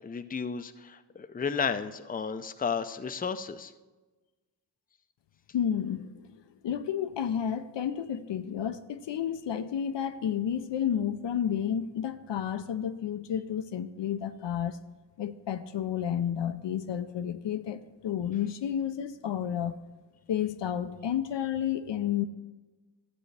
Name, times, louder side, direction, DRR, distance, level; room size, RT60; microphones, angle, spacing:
voice 1, 0.0-3.7, left 6 dB, 20° left, 10 dB, 0.5 m, -33 dB
voice 2, 5.5-14.8 15.2-19.7 20.3-22.2, left 9 dB, 75° left, 10 dB, 0.6 m, -31 dB
12.0 x 7.6 x 3.3 m, 1.2 s
cardioid pair, 45°, 44 cm